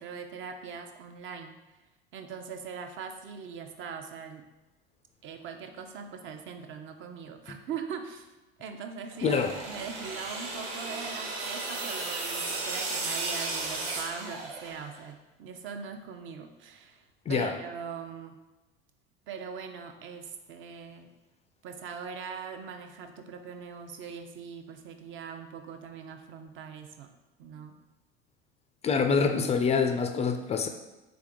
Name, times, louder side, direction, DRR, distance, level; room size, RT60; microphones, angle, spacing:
voice 1, 0.0-1.5 2.1-4.4 5.2-8.3 8.6-9.4 9.7-18.4 19.3-21.1 21.6-27.1 27.4-27.8, right 6 dB, 40° right, 6 dB, 0.6 m, -41 dB
sound 1, 9.1-15.0, right 3 dB, 60° right, 1.1 m, -35 dB
voice 2, 9.2-9.5 17.3-17.5 28.8-30.7, left 5 dB, 20° left, 7 dB, 0.3 m, -25 dB
3.8 x 3.6 x 3.5 m, 1.1 s
hypercardioid pair, 85°, 30 cm